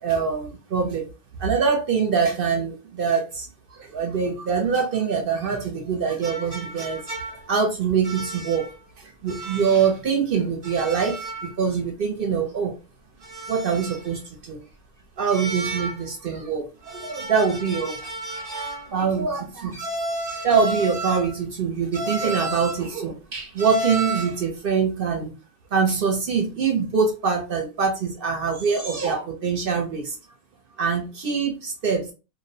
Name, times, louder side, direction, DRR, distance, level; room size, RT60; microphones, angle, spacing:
voice 1, 0.0-1.0 1.4-7.2 7.5-8.7 9.0-12.8 13.5-14.6 15.2-18.0 18.9-19.8 20.4-25.3 25.7-30.1 30.8-32.1, right 6 dB, 55° right, 0.7 m, -24 dB
sound 1, 6.2-7.6 8.0-8.7 9.3-10.0 10.6-11.5 11.8-11.9 13.2-14.2 15.3-16.1 16.8-18.9 19.7-21.4 21.9-22.9 23.6-24.4, right 1 dB, 20° right, 0.8 m, -32 dB
2.6 x 2.1 x 2.7 m
omnidirectional pair, 1.5 m